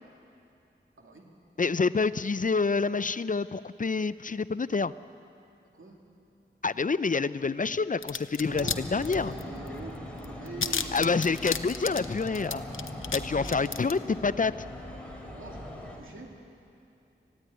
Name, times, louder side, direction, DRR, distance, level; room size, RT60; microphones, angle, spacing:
voice 1, 1.6-4.9 6.6-9.3 10.9-12.6 13.1-14.6, left 4 dB, 40° left, 16 dB, 0.5 m, -27 dB
sound 1, 8.0-8.8 9.0-9.7 9.9-10.0 10.2-13.2 13.4-13.9, left 6 dB, 85° left, 0.7 m, -32 dB
voice 2, 8.4-11.6 13.2-13.7 15.2-16.3, right 3 dB, 90° right, 0 dB, 2.6 m, -45 dB
sound 2, 8.5-16.0, left 1 dB, 5° left, 3.8 m, -40 dB
19.5 x 15.0 x 9.5 m, 2.5 s
wide cardioid pair, 60°, 20 cm